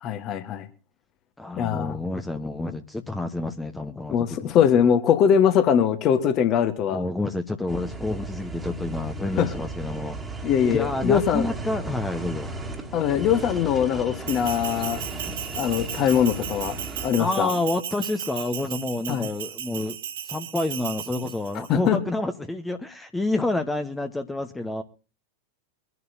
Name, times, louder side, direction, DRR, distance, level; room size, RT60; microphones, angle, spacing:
voice 1, 0.0-0.7 1.6-2.0 4.1-7.0 9.4-9.5 10.4-11.5 12.9-15.0 15.6-16.8 17.0-17.5 19.1-19.3 21.7-22.0, left 8 dB, 35° left, 9 dB, 1.5 m, -22 dB
voice 2, 1.4-4.7 6.9-10.2 10.7-12.5 17.2-20.0 20.3-24.8, left 2 dB, 10° left, 6 dB, 1.0 m, -29 dB
sound 1, 7.7-17.1, right 2 dB, 10° right, 2.0 m, -35 dB
Bell, 14.3-21.7, right 10 dB, 60° right, 1.3 m, -36 dB
24.0 x 11.0 x 2.7 m, 0.34 s
figure-of-eight pair, 90°, 0 cm